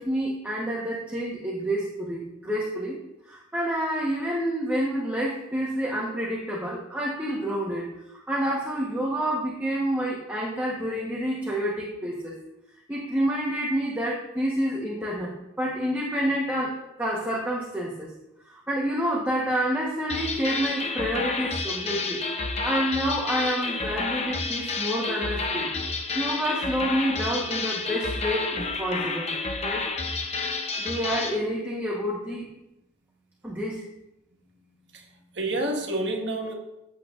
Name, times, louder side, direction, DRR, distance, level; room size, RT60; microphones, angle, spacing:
voice 1, 0.0-3.0 3.3-12.3 12.9-18.1 18.5-22.2 22.6-25.7 26.1-29.3 29.6-29.9 30.8-32.5 33.4-33.8, equal, 10° right, -5 dB, 1.1 m, -28 dB
sound 1, 20.1-31.4, left 3 dB, 35° left, 0.8 m, -30 dB
voice 2, 34.3-36.5, right 1 dB, 70° right, 1 dB, 1.6 m, -30 dB
14.5 x 8.0 x 2.5 m, 0.91 s
head